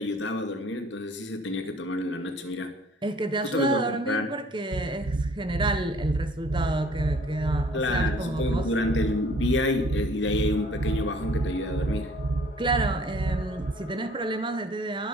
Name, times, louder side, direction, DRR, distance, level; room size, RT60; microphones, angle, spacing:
voice 1, 0.0-2.7 3.4-4.3 7.7-12.1, left 2 dB, 85° left, 2.3 m, -29 dB
voice 2, 3.0-8.7 12.6-15.1, right 2 dB, 25° right, 1.3 m, -30 dB
sound 1, 4.7-13.7, right 2 dB, 85° right, 0.7 m, -28 dB
sound 2, 6.5-14.6, left 3 dB, 45° left, 7.1 m, -45 dB
22.5 x 7.8 x 5.8 m
head